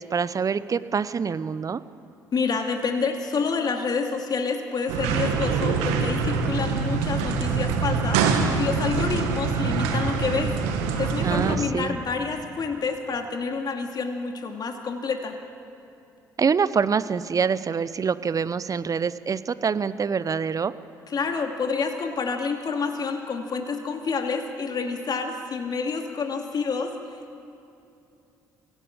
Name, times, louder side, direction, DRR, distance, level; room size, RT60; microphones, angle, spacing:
voice 1, 0.0-1.8 11.2-11.9 16.4-20.7, right 6 dB, 40° right, 15 dB, 0.9 m, -25 dB
voice 2, 2.3-8.2 8.6-10.5 11.0-15.4 21.1-26.9, left 5 dB, 45° left, 4 dB, 2.5 m, -28 dB
sound 1, 4.9-11.6, right 5 dB, 75° right, 1.8 m, -24 dB
24.0 x 16.5 x 8.8 m, 2.7 s
hypercardioid pair, 50°, 9 cm